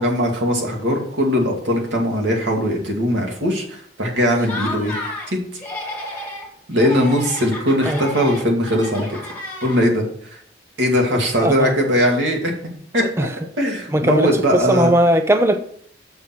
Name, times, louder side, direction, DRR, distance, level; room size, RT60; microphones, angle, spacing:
voice 1, 0.0-5.0 5.3-5.4 6.7-9.2 9.6-10.0 10.8-12.5 12.9-13.3 13.6-14.9, equal, 80° right, 2.3 m, -20 dB
Laughter, 4.4-5.3 5.6-6.5 6.8-10.1, left 1 dB, 10° left, 2.1 m, -31 dB
voice 2, 11.4-11.8 13.2-13.3 13.9-15.6, right 1 dB, 15° right, 0.4 m, -18 dB
7.0 x 6.1 x 6.0 m
head